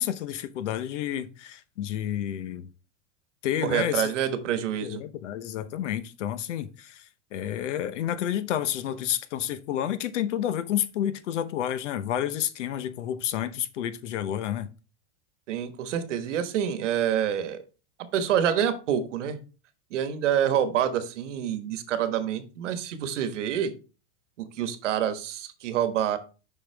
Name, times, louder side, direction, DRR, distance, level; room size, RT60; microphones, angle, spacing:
voice 1, 0.0-2.7 3.4-4.1 4.8-7.0 7.3-14.7, left 10 dB, 80° left, 0.9 m, -30 dB
voice 2, 3.6-5.0 15.5-17.6 18.1-19.4 19.9-23.7 24.4-26.2, right 9 dB, 85° right, 1.3 m, -27 dB
7.3 x 5.7 x 3.3 m
supercardioid pair, 175°, 36 cm